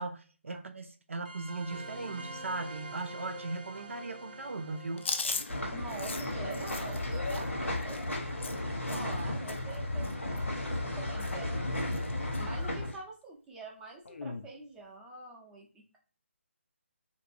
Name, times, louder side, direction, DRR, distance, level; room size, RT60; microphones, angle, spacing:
voice 1, 0.0-5.0, right 3 dB, 70° right, 0.5 m, -38 dB
sound 1, 1.2-8.3, right 1 dB, 45° right, 0.7 m, -47 dB
Chewing mastication, 5.0-9.2 9.5-9.8 10.0-10.9 11.2-11.5 11.8-12.4 12.9-13.0 14.1-14.5, left 4 dB, 60° left, 0.4 m, -39 dB
sound 2, 5.5-12.9, left 1 dB, 85° left, 1.1 m, -34 dB
voice 2, 5.7-11.8 12.4-16.0, right 3 dB, 10° right, 0.6 m, -46 dB
2.9 x 2.6 x 2.6 m
figure-of-eight pair, 150°, 7 cm